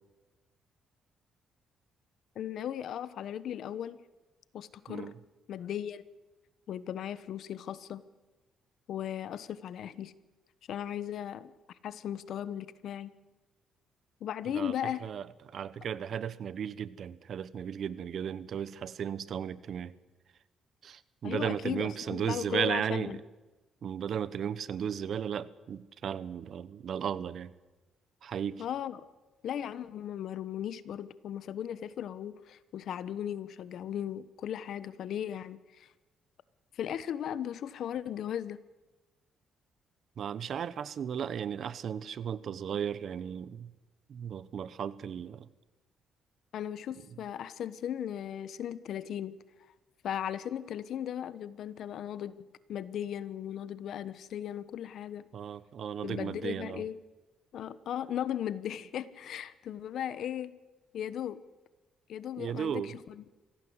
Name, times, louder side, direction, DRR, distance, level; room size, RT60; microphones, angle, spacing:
voice 1, 2.3-4.0 4.5-5.1 5.5-6.0 6.7-8.1 8.9-10.1 10.7-13.1 14.2-15.0 21.2-23.2 28.6-29.1 29.4-35.9 36.7-38.6 46.5-49.4 50.0-55.3 56.0-57.0 57.5-60.5 60.9-61.4 62.1-63.2, left 10 dB, 70° left, 16 dB, 1.1 m, -37 dB
voice 2, 15.5-19.9 20.8-23.2 23.8-27.5 28.2-28.6 40.2-43.7 44.1-45.5 55.3-56.8 62.4-62.9, right 8 dB, 60° right, 17 dB, 1.1 m, -35 dB
25.0 x 17.0 x 8.1 m, 1.2 s
cardioid pair, 90°, 0 cm